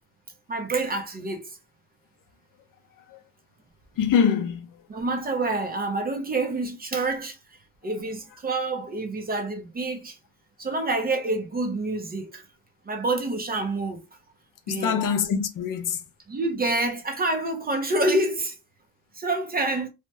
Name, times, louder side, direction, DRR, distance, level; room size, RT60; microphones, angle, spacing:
voice 1, 0.5-1.5 4.9-7.4 7.8-10.2 10.6-12.4 12.9-14.0 14.7-15.0 16.3-18.6 19.1-19.9, right 2 dB, 25° right, 0.5 m, -27 dB
voice 2, 4.0-4.7 14.7-16.0, left 7 dB, 60° left, 0.6 m, -24 dB
2.8 x 2.1 x 3.2 m
cardioid pair, 135°, 37 cm